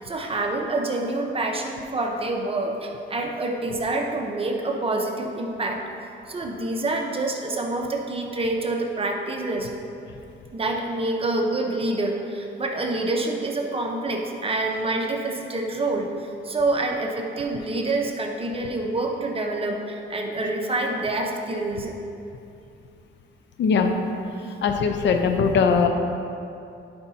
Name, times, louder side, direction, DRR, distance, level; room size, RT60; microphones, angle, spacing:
voice 1, 0.0-5.8 6.3-9.7 10.5-21.9, right 2 dB, 30° right, 1 dB, 0.9 m, -27 dB
voice 2, 23.6-23.9 24.6-25.9, left 5 dB, 65° left, 5 dB, 0.6 m, -20 dB
11.5 x 5.1 x 2.8 m, 2.7 s
cardioid pair, 90°, 20 cm